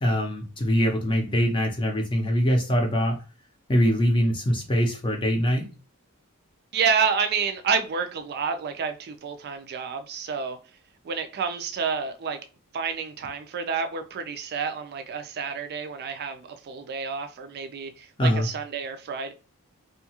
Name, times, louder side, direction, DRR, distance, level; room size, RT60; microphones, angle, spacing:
voice 1, 0.0-3.2 3.7-5.7 18.2-18.5, equal, 25° left, 2 dB, 0.6 m, -23 dB
voice 2, 6.7-10.6 11.0-12.4 12.7-19.3, right 6 dB, 45° right, 7 dB, 0.4 m, -29 dB
2.7 x 2.3 x 2.8 m, 0.32 s
head